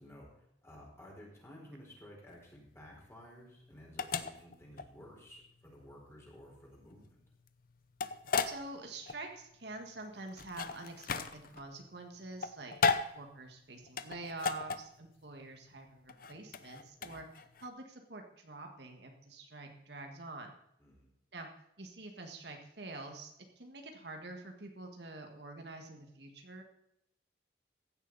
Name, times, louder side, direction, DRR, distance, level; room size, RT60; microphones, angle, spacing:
voice 1, 0.0-7.2 17.0-17.2 20.8-21.1, equal, 15° left, -2 dB, 4.5 m, -54 dB
sound 1, 2.3-17.7, left 5 dB, 50° left, 0.7 m, -37 dB
voice 2, 8.4-12.7 13.1-20.6 21.3-21.5 21.8-26.6, right 2 dB, 65° right, 3 dB, 1.8 m, -47 dB
15.5 x 10.5 x 4.1 m, 0.77 s
head